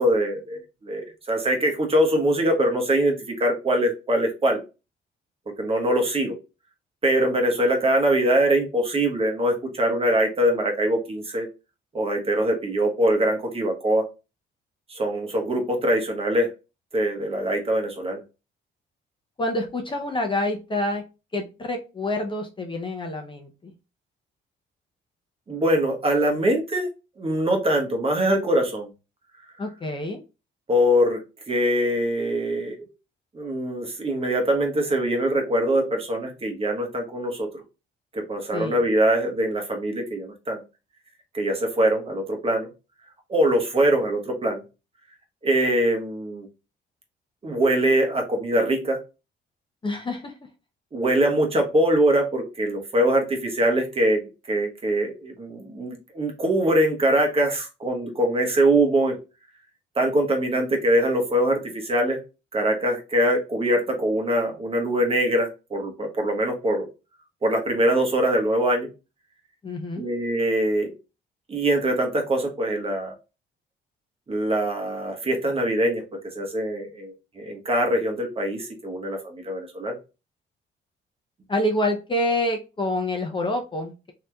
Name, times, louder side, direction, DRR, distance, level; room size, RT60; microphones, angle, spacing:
voice 1, 0.0-4.6 5.5-6.4 7.0-11.5 11.9-14.1 14.9-16.5 16.9-18.2 25.5-26.9 27.2-28.9 30.7-31.2 31.5-32.9 33.3-37.5 38.1-40.6 41.3-42.7 43.3-44.6 45.4-46.5 47.4-49.0 50.9-54.2 54.5-59.2 60.0-62.2 62.5-66.8 67.4-68.9 70.0-70.9 71.5-73.1 74.3-76.0 76.3-80.0, right 1 dB, 30° right, 2 dB, 1.0 m, -23 dB
voice 2, 19.4-21.0 21.3-23.7 29.6-30.2 38.5-38.8 49.8-50.3 69.6-70.1 81.5-84.1, left 1 dB, 25° left, 3 dB, 0.6 m, -27 dB
3.1 x 2.8 x 2.3 m, 0.29 s
cardioid pair, 90°, 20 cm